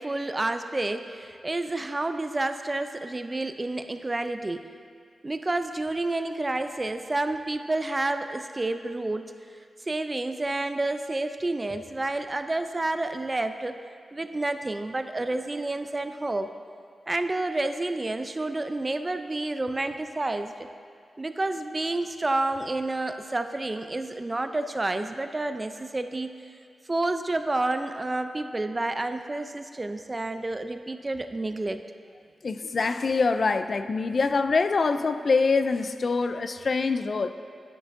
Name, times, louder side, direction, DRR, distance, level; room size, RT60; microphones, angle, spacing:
voice 1, 0.0-4.7 5.2-9.3 9.9-13.8 14.1-16.5 17.1-20.7 21.2-26.3 26.9-31.8, right 2 dB, 30° right, 8 dB, 0.4 m, -29 dB
voice 2, 32.4-37.3, left 4 dB, 55° left, 10 dB, 0.3 m, -24 dB
9.8 x 9.6 x 2.6 m, 2.3 s
cardioid pair, 70°, 0 cm